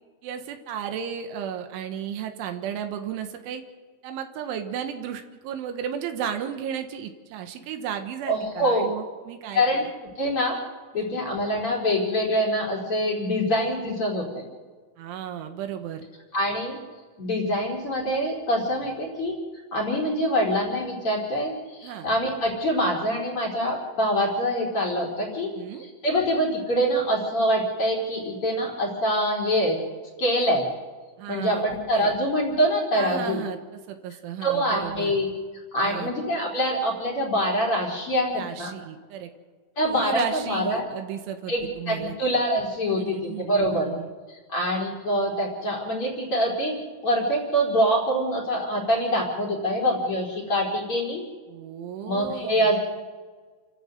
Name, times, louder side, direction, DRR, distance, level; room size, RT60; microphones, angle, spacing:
voice 1, 0.2-3.6 4.0-9.9 10.9-11.2 15.0-16.1 21.8-22.1 25.6-25.9 31.2-32.1 32.9-35.2 35.8-36.1 38.3-39.3 39.9-42.2 42.9-44.1 51.5-52.7, right 8 dB, 80° right, 6 dB, 3.8 m, -34 dB
voice 2, 8.3-8.9 9.5-9.9 10.2-10.6 10.9-14.4 16.3-16.8 17.2-19.4 19.7-25.5 26.0-29.8 30.2-30.6 31.3-33.4 34.4-35.3 35.7-38.7 39.8-40.9 41.5-43.9 44.5-46.8 47.0-51.2 52.1-52.8, equal, 30° left, 1 dB, 4.6 m, -25 dB
29.0 x 13.5 x 8.1 m, 1.4 s
omnidirectional pair, 5.5 m